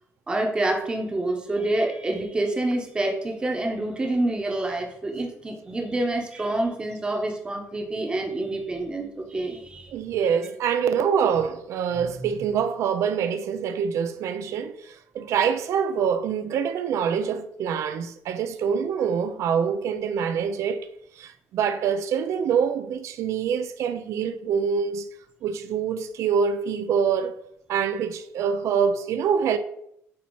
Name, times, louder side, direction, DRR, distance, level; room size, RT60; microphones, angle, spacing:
voice 1, 0.3-9.9 11.9-12.5, right 2 dB, 15° right, 0.9 m, -27 dB
voice 2, 9.9-20.9 21.2-25.1 25.4-27.4 27.7-29.6, right 7 dB, 60° right, 0.4 m, -25 dB
8.2 x 2.8 x 4.6 m
cardioid pair, 145°, 6 cm